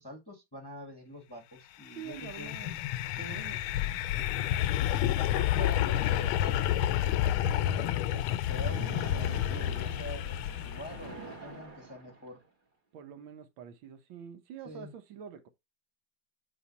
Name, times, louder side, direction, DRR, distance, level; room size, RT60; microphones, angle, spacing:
voice 1, 0.0-2.5 3.1-3.4 4.9-10.3 10.6-12.4 14.6-14.9, equal, 15° left, 0.9 m, -45 dB
sound 1, 1.9-11.1, left 12 dB, 90° left, 1.4 m, -30 dB
voice 2, 2.0-2.8 3.3-4.0 12.9-15.5, right 8 dB, 75° right, 1.6 m, -46 dB
Splash splatter, 8.4-12.5, right 3 dB, 25° right, 1.9 m, -45 dB
8.3 x 3.0 x 4.0 m
omnidirectional pair, 2.2 m